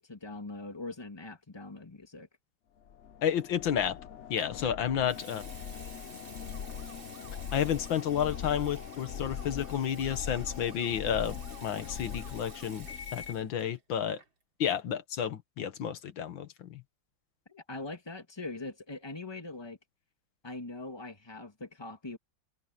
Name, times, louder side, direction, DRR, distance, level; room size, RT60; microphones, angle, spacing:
voice 1, 0.0-2.3 17.5-19.8 20.4-22.2, left 2 dB, 15° left, 1.9 m, -42 dB
sound 1, 2.8-13.5, left 8 dB, 55° left, 0.8 m, -41 dB
voice 2, 3.2-4.0 4.3-5.4 7.5-11.4 11.6-14.2 14.6-16.8, left 9 dB, 80° left, 2.0 m, -31 dB
Water tap faucet / Sink (filling or washing) / Liquid, 4.4-4.6 5.0-13.8 14.1-14.4, right 4 dB, 80° right, 4.7 m, -53 dB
sound 2, 6.5-12.7, right 4 dB, 55° right, 8.0 m, -58 dB
omnidirectional pair, 2.1 m